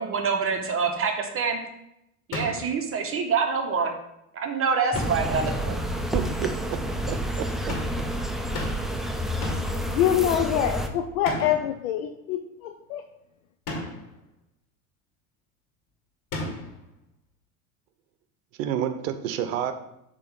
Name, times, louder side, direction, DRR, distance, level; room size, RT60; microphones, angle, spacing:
voice 1, 0.0-1.6 2.3-3.9 4.3-5.8, right 5 dB, 30° right, 5 dB, 0.9 m, -26 dB
sound 1, 2.3-2.8 4.9-5.4 7.7-8.1 8.5-9.0 9.4-9.8 11.2-11.7 13.7-14.1 16.3-16.8, left 2 dB, 45° left, 1.8 m, -34 dB
sound 2, 4.9-10.9, equal, ahead, 0.4 m, -29 dB
voice 2, 6.1-6.8 7.1-7.8 18.6-19.7, right 9 dB, 65° right, 9 dB, 0.8 m, -29 dB
voice 3, 9.9-13.0, left 10 dB, 75° left, 5 dB, 0.6 m, -25 dB
6.8 x 3.1 x 5.0 m, 0.82 s
hypercardioid pair, 80°, 43 cm